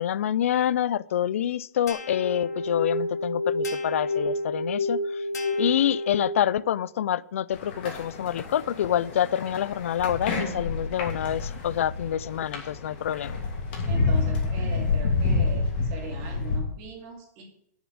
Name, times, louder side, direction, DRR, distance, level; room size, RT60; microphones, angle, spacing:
voice 1, 0.0-5.2 5.6-13.4, left 10 dB, 50° left, 21 dB, 0.4 m, -27 dB
sound 1, 1.9-6.6, left 2 dB, 70° left, 2.3 m, -29 dB
sound 2, 7.5-16.6, left 3 dB, 35° left, 2.7 m, -28 dB
voice 2, 13.9-17.4, right 5 dB, 25° right, 1 dB, 2.4 m, -40 dB
9.4 x 7.2 x 8.7 m, 0.71 s
hypercardioid pair, 175°, 9 cm